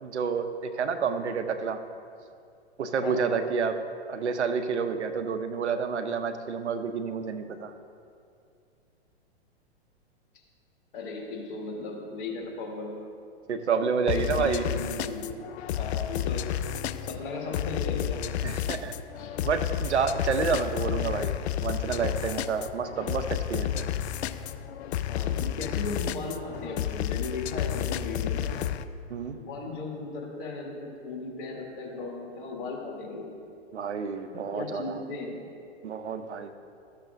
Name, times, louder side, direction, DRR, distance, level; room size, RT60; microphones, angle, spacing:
voice 1, 0.0-1.8 2.8-3.7 4.1-7.7 13.5-14.6 18.4-18.9 19.4-23.9 29.1-29.4 33.7-35.0 35.8-36.5, right 6 dB, 90° right, 9 dB, 0.7 m, -29 dB
voice 2, 3.0-3.4 10.9-13.0 14.1-15.3 15.8-16.5 17.0-18.3 19.2-19.3 25.1-28.5 29.4-33.3 34.5-35.4, left 3 dB, 55° left, -2 dB, 2.1 m, -36 dB
sound 1, 14.1-28.8, left 10 dB, 75° left, 0.5 m, -31 dB
13.0 x 6.6 x 2.6 m, 2.4 s
hypercardioid pair, 120°, 33 cm